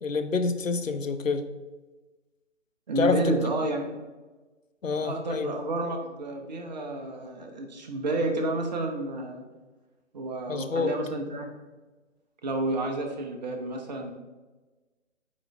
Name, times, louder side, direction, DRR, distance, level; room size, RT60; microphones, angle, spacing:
voice 1, 0.0-1.5 3.0-3.4 4.8-5.6 10.5-10.9, left 4 dB, 85° left, 10 dB, 0.7 m, -27 dB
voice 2, 2.9-3.9 5.0-9.4 10.1-11.5 12.4-14.1, right 2 dB, 35° right, 2 dB, 1.0 m, -30 dB
9.0 x 3.9 x 3.4 m, 1.2 s
figure-of-eight pair, 145°, 38 cm